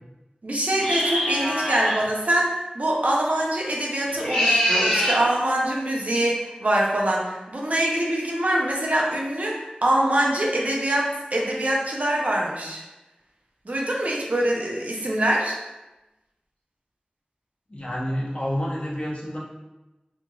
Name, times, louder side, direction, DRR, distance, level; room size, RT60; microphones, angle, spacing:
voice 1, 0.4-12.8 13.7-15.6, right 1 dB, 55° right, -2 dB, 0.5 m, -24 dB
sound 1, 0.8-2.0 4.1-5.2, equal, 25° left, 1.2 m, -23 dB
voice 2, 17.7-19.4, equal, 45° left, -5 dB, 0.7 m, -28 dB
2.8 x 2.6 x 2.3 m, 1.0 s
wide cardioid pair, 50°, 3 cm